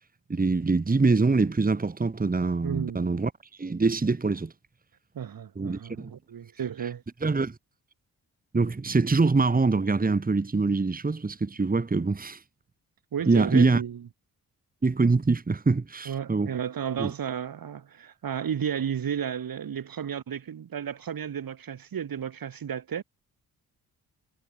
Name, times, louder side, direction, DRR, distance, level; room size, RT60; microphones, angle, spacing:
voice 1, 0.3-4.5 5.6-6.1 7.2-7.6 8.5-12.4 13.3-13.8 14.8-16.5 17.0-17.1, right 3 dB, 25° right, 2.1 m, -24 dB
voice 2, 2.6-3.2 5.1-7.0 13.1-14.1 16.1-23.0, right 8 dB, 65° right, 5.9 m, -33 dB
cardioid pair, 95°, 37 cm